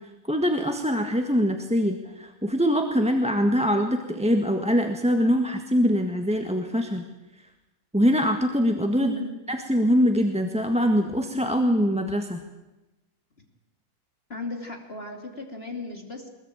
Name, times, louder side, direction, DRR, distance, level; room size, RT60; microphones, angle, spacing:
voice 1, 0.3-7.0 7.9-9.1 9.5-12.4, equal, 5° right, 4 dB, 1.4 m, -23 dB
voice 2, 9.0-9.4 13.4-13.5 14.3-16.3, left 3 dB, 30° left, 3 dB, 3.1 m, -36 dB
23.0 x 21.5 x 9.0 m, 1.0 s
omnidirectional pair, 2.0 m